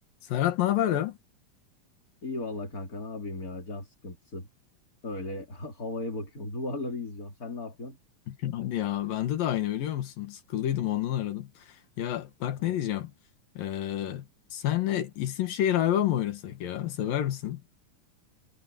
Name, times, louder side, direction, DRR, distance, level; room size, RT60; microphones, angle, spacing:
voice 1, 0.3-1.2 8.3-13.1 13.6-17.6, left 12 dB, 90° left, 3.6 m, -29 dB
voice 2, 2.2-4.5 5.0-8.0 12.7-12.8, left 2 dB, 25° left, 3.7 m, -36 dB
omnidirectional pair, 3.9 m